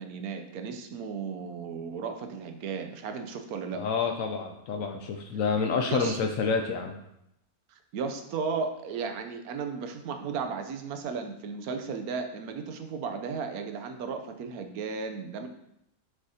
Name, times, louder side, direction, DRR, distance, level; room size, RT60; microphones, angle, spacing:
voice 1, 0.0-3.8 5.9-6.2 7.7-15.5, right 5 dB, 85° right, 6 dB, 1.2 m, -35 dB
voice 2, 3.7-6.9, left 5 dB, 70° left, 4 dB, 1.0 m, -28 dB
7.1 x 6.3 x 2.8 m, 0.82 s
omnidirectional pair, 1.5 m